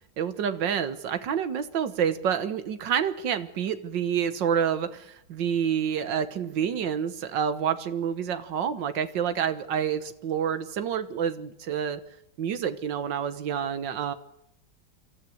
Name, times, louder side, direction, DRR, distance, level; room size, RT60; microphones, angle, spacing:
voice 1, 0.0-12.0 12.4-14.1, right 8 dB, 85° right, 11 dB, 1.9 m, -28 dB
25.5 x 14.0 x 7.9 m, 0.80 s
omnidirectional pair, 1.9 m